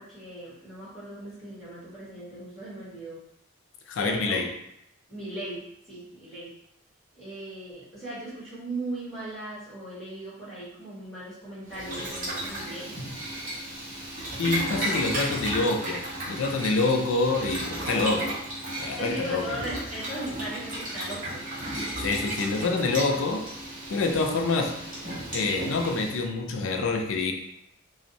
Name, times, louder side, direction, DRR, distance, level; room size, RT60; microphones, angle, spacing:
voice 1, 0.0-3.2 4.0-4.4 5.1-5.6 5.9-6.5 7.1-12.9 19.0-21.4, right 1 dB, ahead, -13 dB, 1.0 m, -38 dB
voice 2, 3.9-4.5 14.4-18.4 18.8-19.5 22.0-23.5 23.9-24.8 25.3-27.3, left 3 dB, 65° left, 3 dB, 0.4 m, -26 dB
Boiling, 11.7-26.2, right 1 dB, 40° right, 0.7 m, -34 dB
2.5 x 2.0 x 2.6 m, 0.75 s
head